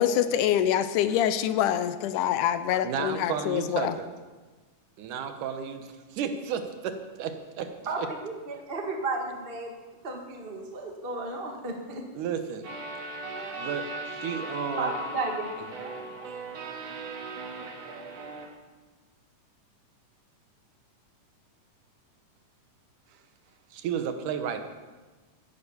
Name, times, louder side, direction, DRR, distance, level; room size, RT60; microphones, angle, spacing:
voice 1, 0.0-3.9, left 10 dB, 80° left, 12 dB, 2.1 m, -25 dB
voice 2, 2.8-4.2 5.0-7.7 8.0-8.1 12.1-12.7 13.6-14.9 23.7-24.6, right 7 dB, 75° right, 8 dB, 2.6 m, -33 dB
voice 3, 7.9-9.7 10.0-12.0 14.8-16.0, right 2 dB, 30° right, 2 dB, 1.0 m, -34 dB
sound 1, 12.6-18.5, right 2 dB, 55° right, 2.8 m, -38 dB
15.0 x 10.5 x 7.0 m, 1.3 s
omnidirectional pair, 3.7 m